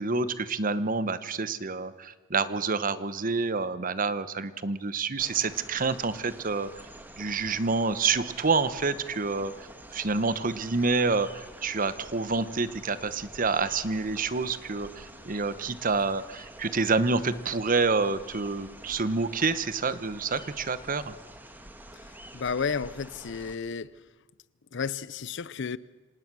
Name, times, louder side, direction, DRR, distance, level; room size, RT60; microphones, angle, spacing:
voice 1, 0.0-6.7 7.2-9.5 9.9-21.1, right 4 dB, 40° right, 1.0 m, -28 dB
sound 1, 5.2-23.6, right 1 dB, 10° right, 1.6 m, -48 dB
voice 2, 22.3-23.9 24.7-25.8, left 5 dB, 60° left, 0.6 m, -32 dB
26.0 x 19.0 x 6.2 m
head